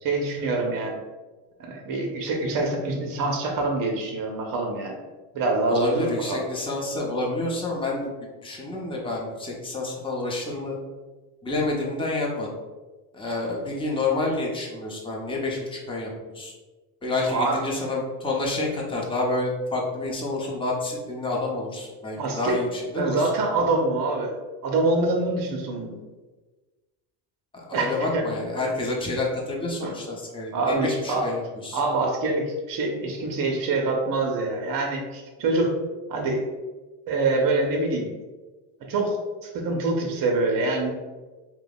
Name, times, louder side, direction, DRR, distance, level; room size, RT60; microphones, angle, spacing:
voice 1, 0.0-1.0 1.6-5.0 5.3-6.4 17.3-17.6 22.2-22.6 23.0-24.3 24.6-26.0 27.7-28.2 29.8-29.9 30.5-31.3 31.7-35.7 36.1-36.5 37.1-38.1 38.9-40.9, right 2 dB, 45° right, 2 dB, 0.8 m, -25 dB
voice 2, 5.7-8.1 8.4-10.8 11.4-12.5 13.1-16.5 17.0-23.3 27.5-31.8, left 2 dB, 10° left, -3 dB, 0.8 m, -28 dB
2.7 x 2.3 x 4.0 m, 1.2 s
hypercardioid pair, 65°, 50 cm